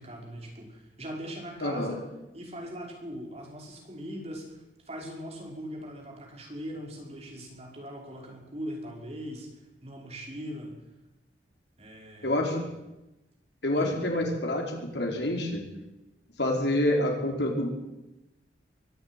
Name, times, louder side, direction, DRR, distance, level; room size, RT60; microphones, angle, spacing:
voice 1, 0.0-2.0 2.3-9.5 9.8-10.8 11.8-12.4 13.8-13.9, equal, 35° right, 1 dB, 5.4 m, -40 dB
voice 2, 1.6-1.9 12.2-12.6 13.6-15.6 16.4-17.7, left 1 dB, 70° left, 2 dB, 4.9 m, -27 dB
23.0 x 12.5 x 9.9 m, 0.97 s
head